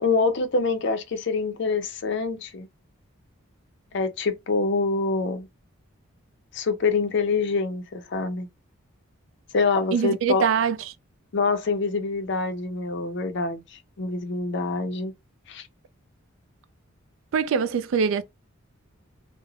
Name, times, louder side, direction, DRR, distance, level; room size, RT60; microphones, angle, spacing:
voice 1, 0.0-2.7 3.9-5.5 6.5-8.5 9.5-10.5 11.3-15.1 15.5-15.7, left 4 dB, 55° left, 0.4 m, -25 dB
voice 2, 9.9-10.9 17.3-18.2, right 6 dB, 70° right, 0.3 m, -23 dB
3.1 x 2.0 x 2.3 m
head